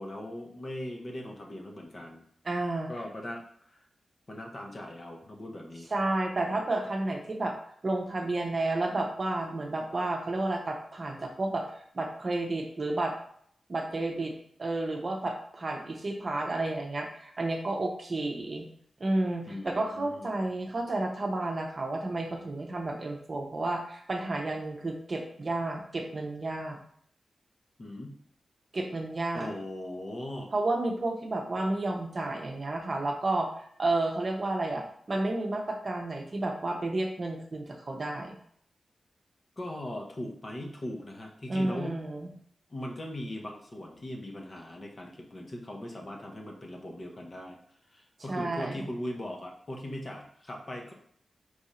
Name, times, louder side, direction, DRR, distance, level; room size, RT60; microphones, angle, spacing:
voice 1, 0.0-2.2 2.9-3.8 4.3-5.9 19.5-20.3 27.8-28.2 29.3-30.5 39.6-42.0 42.7-47.6 47.9-50.9, left 1 dB, 35° left, 1 dB, 0.8 m, -39 dB
voice 2, 2.4-2.9 5.9-7.6 7.8-11.7 11.9-13.2 13.7-14.3 14.6-18.7 19.0-26.8 28.7-29.5 30.5-38.4 41.5-42.3 48.3-48.8, right 2 dB, 40° right, 2 dB, 0.8 m, -31 dB
4.8 x 2.6 x 4.2 m, 0.63 s
wide cardioid pair, 130°, 0 cm